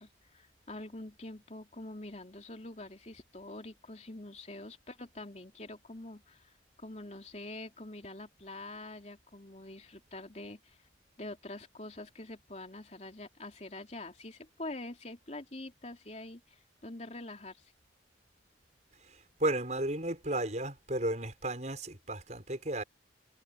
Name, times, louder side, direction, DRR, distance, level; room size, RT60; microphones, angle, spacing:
voice 1, 0.0-6.5 6.8-10.8 11.2-17.6, left 2 dB, 35° left, 3.2 m, -45 dB
voice 2, 19.1-22.8, right 1 dB, 40° right, 6.2 m, -34 dB
head